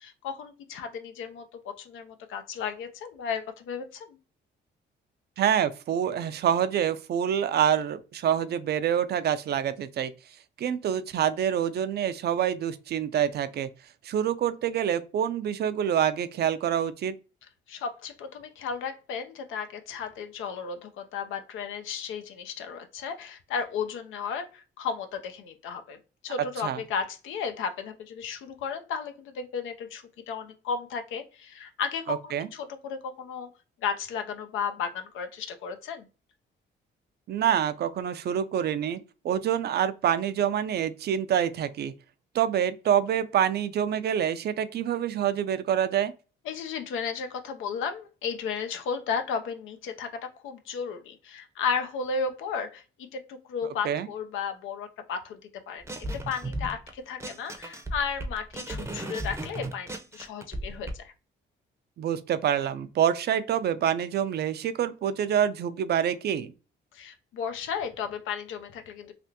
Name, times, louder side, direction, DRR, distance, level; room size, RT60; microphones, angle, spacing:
voice 1, 0.0-4.2 17.7-26.0 26.2-33.5 33.8-36.1 46.5-52.8 53.1-55.4 55.7-55.8 56.1-61.1 66.9-69.1, left 6 dB, 85° left, 0.6 m, -34 dB
voice 2, 5.4-10.1 10.6-13.7 14.0-17.1 26.6-26.8 32.1-32.5 37.3-39.0 39.2-41.9 42.3-46.1 53.8-54.1 62.0-66.5, right 9 dB, 55° right, 0.4 m, -26 dB
sound 1, 55.9-56.9 57.2-60.9, right 1 dB, 15° right, 0.6 m, -35 dB
3.3 x 2.4 x 2.8 m
cardioid pair, 90°, 20 cm